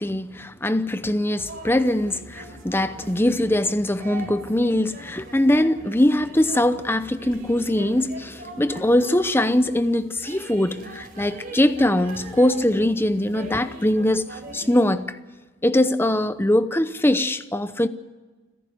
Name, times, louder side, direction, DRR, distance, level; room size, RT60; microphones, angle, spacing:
voice 1, 0.0-15.2 15.6-17.9, left 1 dB, 10° left, 0.7 m, -22 dB
sound 1, 1.5-14.9, right 1 dB, 40° right, 5.2 m, -41 dB
sound 2, 6.9-10.6, right 1 dB, 15° right, 3.4 m, -50 dB
29.5 x 11.0 x 9.4 m
head